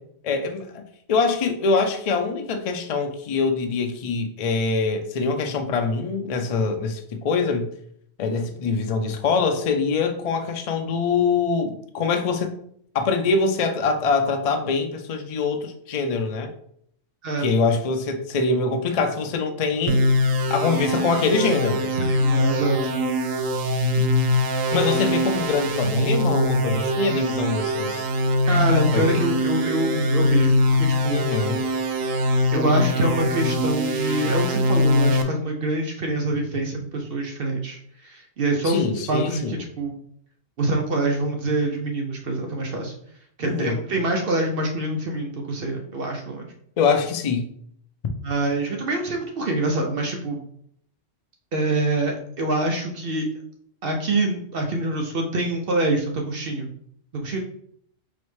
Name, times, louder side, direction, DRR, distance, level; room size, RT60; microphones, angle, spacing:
voice 1, 0.2-0.8 1.1-7.7 8.2-12.5 12.9-16.5 17.4-20.0 20.5-21.8 24.7-28.1 28.9-29.1 31.1-31.6 38.6-39.6 43.4-43.8 46.8-47.5, left 4 dB, 75° left, 6 dB, 0.3 m, -24 dB
sound 1, 19.9-35.2, left 1 dB, 85° right, 1.0 m, -22 dB
voice 2, 21.8-22.9 28.5-31.3 32.5-39.9 40.6-42.9 43.4-46.5 48.2-50.4 51.5-53.3 53.8-56.7 57.1-57.4, right 2 dB, 60° right, 2 dB, 0.7 m, -25 dB
4.0 x 3.1 x 3.1 m, 0.67 s
omnidirectional pair, 1.3 m